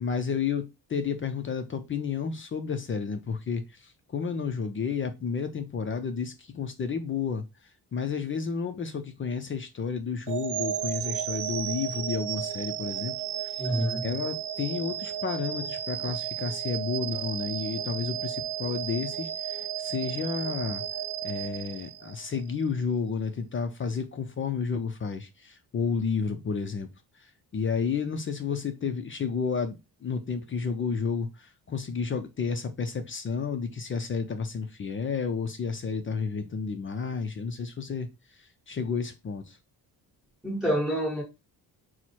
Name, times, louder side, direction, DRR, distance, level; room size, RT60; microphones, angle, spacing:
voice 1, 0.0-7.4 7.9-13.1 13.4-13.7 14.0-20.8 21.2-26.9 27.5-38.1 38.7-39.6, left 5 dB, 35° left, 0.4 m, -31 dB
sound 1, 10.3-22.4, right 10 dB, 85° right, 0.5 m, -33 dB
voice 2, 13.6-14.1 40.4-41.2, equal, ahead, 1.5 m, -27 dB
4.4 x 2.1 x 4.2 m
wide cardioid pair, 175°, 39 cm